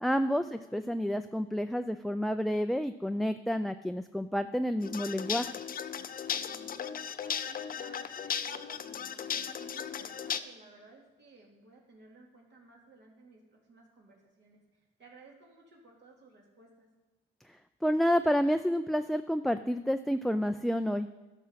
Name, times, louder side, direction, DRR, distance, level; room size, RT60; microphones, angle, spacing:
voice 1, 0.0-5.5 17.5-17.6 17.8-21.1, equal, ahead, 8 dB, 0.3 m, -29 dB
sound 1, 4.8-10.4, left 8 dB, 45° left, 0.6 m, -36 dB
voice 2, 6.5-16.9, right 3 dB, 60° right, -2 dB, 2.6 m, -56 dB
12.0 x 6.2 x 5.8 m, 1.2 s
cardioid pair, 90°, 20 cm